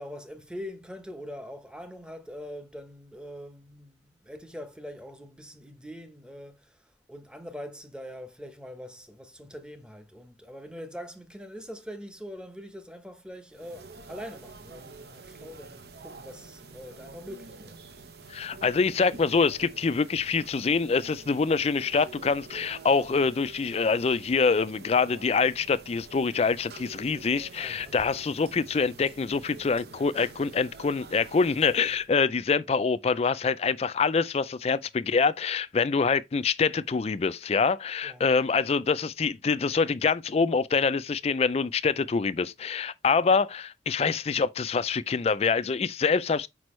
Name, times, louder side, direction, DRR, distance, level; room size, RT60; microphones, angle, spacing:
voice 1, 0.0-17.8 27.6-28.1 32.1-32.2 38.0-38.3, equal, 5° right, 0.8 m, -43 dB
sound 1, 13.5-32.1, right 4 dB, 65° right, 0.9 m, -47 dB
voice 2, 18.3-46.5, left 5 dB, 35° left, 0.4 m, -25 dB
6.1 x 5.2 x 3.1 m
head